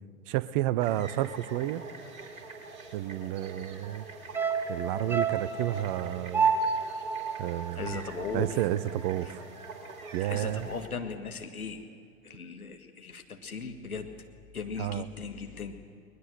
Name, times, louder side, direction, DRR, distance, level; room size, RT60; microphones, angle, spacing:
voice 1, 0.3-1.8 2.9-4.1 4.7-6.5 7.4-8.0 8.3-9.4 10.1-10.7 14.8-15.1, right 14 dB, 35° right, 18 dB, 0.7 m, -30 dB
sound 1, 0.8-10.9, right 3 dB, 65° right, 2.8 m, -45 dB
sound 2, 4.3-8.7 9.0-9.1, right 5 dB, 5° right, 0.4 m, -30 dB
voice 2, 7.8-8.6 10.2-11.8 12.2-14.1 14.5-15.7, left 5 dB, 80° left, 5 dB, 1.9 m, -38 dB
21.0 x 20.0 x 6.8 m, 2.4 s
figure-of-eight pair, 90°, 43 cm